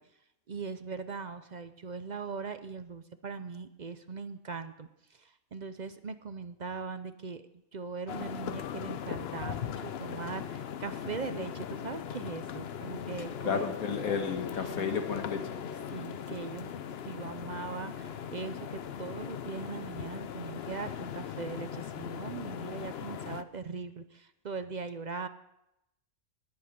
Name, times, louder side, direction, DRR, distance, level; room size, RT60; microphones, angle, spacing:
voice 1, 0.5-7.4 7.7-13.7 14.7-14.9 15.9-25.3, right 5 dB, 50° right, 10 dB, 0.5 m, -40 dB
sound 1, 8.1-23.4, left 8 dB, 55° left, 0.8 m, -39 dB
voice 2, 13.4-15.6, left 6 dB, 80° left, 6 dB, 1.9 m, -32 dB
20.5 x 8.1 x 5.1 m, 0.84 s
omnidirectional pair, 1.5 m